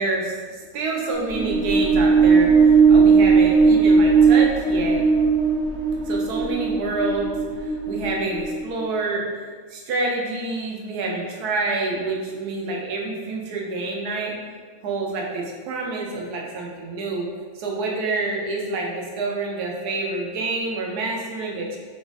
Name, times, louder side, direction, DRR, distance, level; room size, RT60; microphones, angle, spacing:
voice 1, 0.0-5.0 6.0-7.3 7.9-9.2 9.7-14.3 14.8-17.3 17.6-21.8, right 3 dB, 85° right, -1 dB, 1.3 m, -27 dB
sound 1, 1.1-8.8, right 5 dB, 65° right, 0.7 m, -17 dB
4.3 x 2.4 x 3.9 m, 1.5 s
omnidirectional pair, 1.6 m